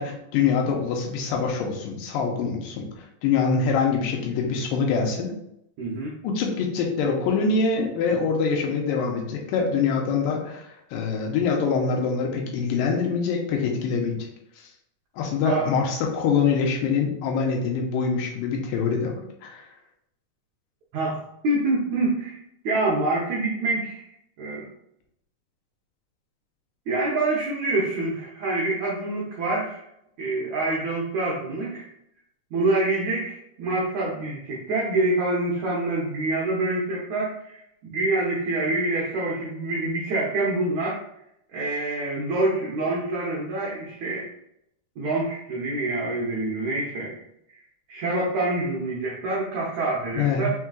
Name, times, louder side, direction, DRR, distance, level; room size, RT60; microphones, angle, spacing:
voice 1, 0.0-5.3 6.2-14.2 15.2-19.7 50.2-50.5, left 5 dB, 75° left, 1 dB, 2.2 m, -24 dB
voice 2, 5.8-6.1 15.4-15.7 20.9-22.4 22.6-24.1 24.4-24.7 26.9-29.8 30.2-31.9 32.5-37.6 37.9-41.0 41.5-44.3 45.0-47.2 47.9-50.5, right 2 dB, 85° right, -5 dB, 1.6 m, -26 dB
6.0 x 3.6 x 2.3 m, 0.78 s
omnidirectional pair, 4.5 m